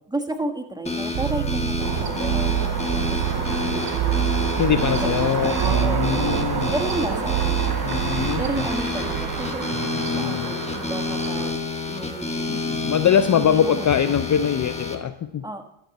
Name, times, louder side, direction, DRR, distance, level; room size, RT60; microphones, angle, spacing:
voice 1, 0.1-4.4 4.9-6.4 6.7-7.8 8.4-9.7 10.2-12.5 13.3-14.2 15.4-15.6, right 2 dB, 10° right, 4 dB, 1.3 m, -32 dB
sound 1, 0.9-15.0, left 2 dB, 15° left, 1.3 m, -30 dB
sound 2, 1.1-9.6, right 11 dB, 85° right, 0.6 m, -27 dB
sound 3, 1.8-11.5, right 5 dB, 45° right, 1.6 m, -30 dB
voice 2, 4.6-6.7 7.8-8.4 9.7-10.5 12.5-15.4, left 8 dB, 40° left, 11 dB, 0.5 m, -23 dB
12.0 x 7.8 x 4.1 m, 0.88 s
cardioid pair, 80°, 49 cm